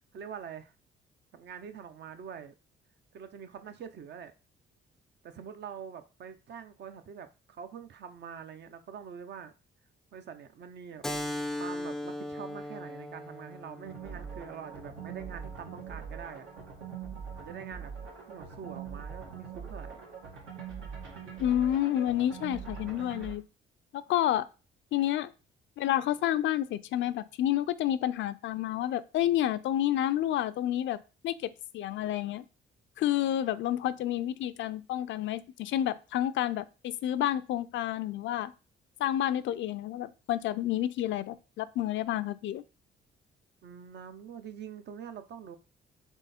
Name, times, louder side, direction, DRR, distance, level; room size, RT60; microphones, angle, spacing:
voice 1, 0.1-0.7 1.3-2.5 3.1-4.3 5.2-9.5 10.1-11.1 11.5-16.5 17.4-17.9 18.3-20.1 43.6-45.6, right 7 dB, 60° right, 9 dB, 0.6 m, -45 dB
Keyboard (musical), 11.0-16.2, left 1 dB, ahead, 0.3 m, -39 dB
sound 1, 13.8-23.3, right 6 dB, 85° right, 1.4 m, -43 dB
voice 2, 21.4-23.4 23.9-24.5 24.9-25.3 25.8-31.0 31.2-32.4 33.0-38.5 39.0-42.6, left 12 dB, 70° left, 14 dB, 0.4 m, -29 dB
3.6 x 3.5 x 4.2 m, 0.32 s
cardioid pair, 90°, 20 cm